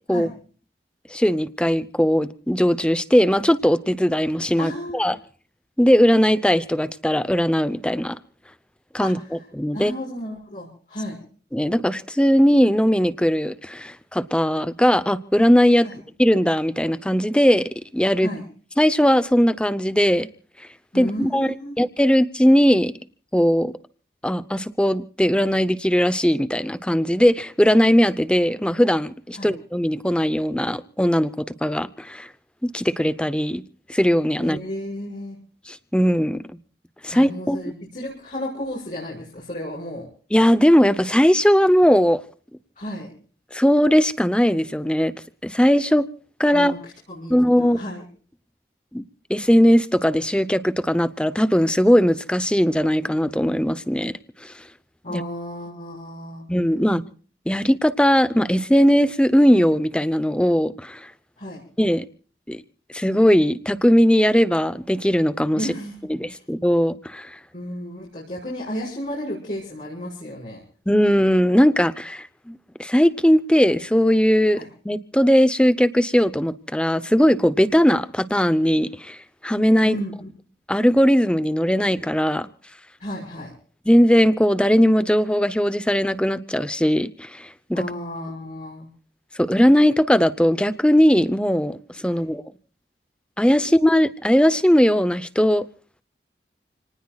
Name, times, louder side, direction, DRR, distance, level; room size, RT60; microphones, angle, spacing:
voice 1, 1.1-5.2 5.8-8.2 8.9-9.2 9.5-9.9 11.5-15.9 16.2-18.3 18.8-20.3 20.9-22.9 23.3-23.7 24.2-32.3 32.6-33.6 33.9-34.6 35.7-36.4 37.0-37.6 40.3-42.2 43.5-45.1 45.4-46.1 46.4-46.7 47.3-47.8 48.9-54.1 54.4-54.5 55.1-55.2 56.5-57.0 57.5-61.1 61.8-62.0 62.5-62.6 62.9-65.6 66.1-67.4 70.9-74.6 74.8-79.2 79.4-79.9 80.7-82.5 83.9-87.8 89.4-92.4 93.4-95.6, equal, 5° left, 0.7 m, -19 dB
voice 2, 4.6-5.2 9.0-9.4 9.7-11.2 15.8-16.0 18.2-18.5 20.9-21.7 29.3-29.5 34.4-35.4 37.1-40.1 42.8-43.1 46.5-46.8 47.1-48.0 55.0-56.5 61.4-61.6 65.6-66.0 66.2-66.4 67.5-70.6 74.5-74.7 79.8-80.3 83.0-83.5 87.7-88.9 92.1-92.3, equal, 45° left, 6.3 m, -33 dB
29.5 x 19.5 x 2.4 m
head